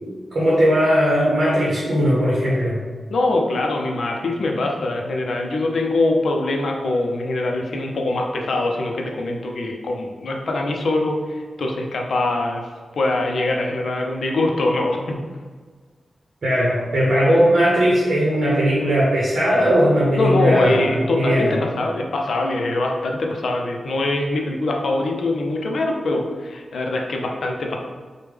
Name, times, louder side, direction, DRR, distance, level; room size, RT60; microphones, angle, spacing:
voice 1, 0.0-2.8 16.4-21.6, equal, 65° right, -6 dB, 0.8 m, -18 dB
voice 2, 3.1-11.2 11.6-12.6 13.0-15.2 20.1-27.8, left 2 dB, 75° left, 1 dB, 0.4 m, -23 dB
3.4 x 2.1 x 3.2 m, 1.5 s
wide cardioid pair, 85°, 0 cm